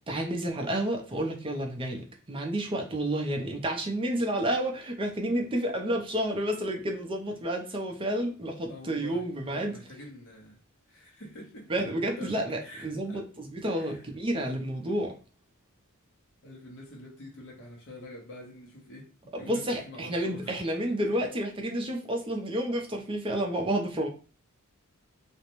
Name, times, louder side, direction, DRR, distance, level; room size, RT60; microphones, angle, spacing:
voice 1, 0.1-9.7 11.7-15.1 19.3-24.1, right 1 dB, 25° right, 0.5 m, -30 dB
voice 2, 8.7-10.6 10.9-11.9 12.2-13.3 13.7-14.1 16.4-19.1 19.3-20.6 21.0-21.1, left 1 dB, 60° left, 0.9 m, -46 dB
2.5 x 2.1 x 2.9 m
head